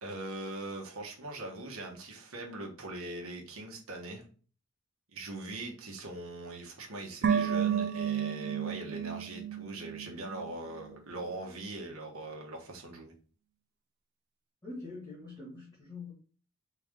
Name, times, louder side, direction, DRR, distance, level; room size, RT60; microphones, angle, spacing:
voice 1, 0.0-4.2 5.1-13.1, right 2 dB, 75° right, 1.3 m, -41 dB
sound 1, 7.2-10.5 10.8-10.9, right 8 dB, 50° right, 0.4 m, -31 dB
voice 2, 14.6-16.1, left 3 dB, 15° left, 1.4 m, -44 dB
3.9 x 3.5 x 3.6 m
head